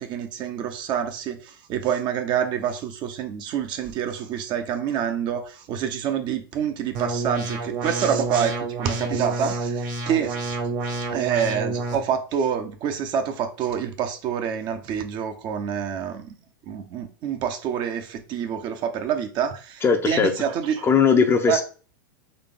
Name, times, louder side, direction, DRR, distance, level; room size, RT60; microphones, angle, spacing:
voice 1, 0.0-10.6 11.1-16.3 16.7-20.9 21.5-21.6, right 8 dB, 40° right, 0.8 m, -27 dB
sound 1, 6.9-11.9, right 3 dB, 60° right, 1.7 m, -29 dB
voice 2, 19.8-20.5 20.8-21.6, left 5 dB, 20° left, 0.7 m, -19 dB
4.0 x 3.2 x 3.7 m
hypercardioid pair, 95°, 11 cm